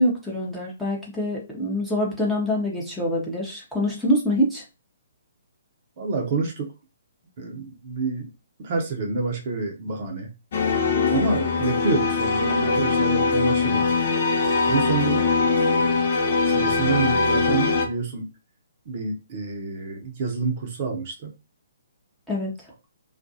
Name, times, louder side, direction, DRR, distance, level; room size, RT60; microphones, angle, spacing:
voice 1, 0.0-4.6 22.3-22.5, equal, ahead, -5 dB, 0.8 m, -25 dB
voice 2, 6.0-6.7 7.4-8.3 8.6-10.3 11.1-13.8 14.7-15.2 16.4-18.3 18.9-21.3, right 4 dB, 40° right, 1 dB, 0.7 m, -27 dB
sound 1, 10.5-17.9, left 4 dB, 45° left, 0.5 m, -22 dB
2.4 x 2.2 x 2.7 m, 0.28 s
figure-of-eight pair, 130°, 0 cm